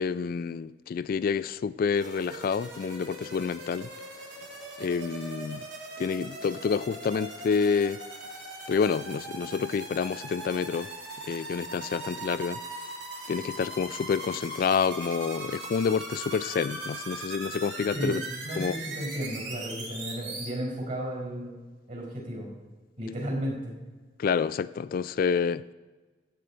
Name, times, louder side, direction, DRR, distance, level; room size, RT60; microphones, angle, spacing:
voice 1, 0.0-3.9 4.8-5.7 6.0-8.0 8.7-10.9 11.3-12.6 13.3-18.2 18.6-18.7 24.2-25.6, left 6 dB, 50° left, 0.3 m, -28 dB
sound 1, 2.0-20.5, right 2 dB, 80° right, 2.6 m, -40 dB
voice 2, 17.9-21.6 21.9-22.6 23.0-23.8, equal, 50° right, 4.5 m, -34 dB
15.5 x 8.2 x 4.3 m
head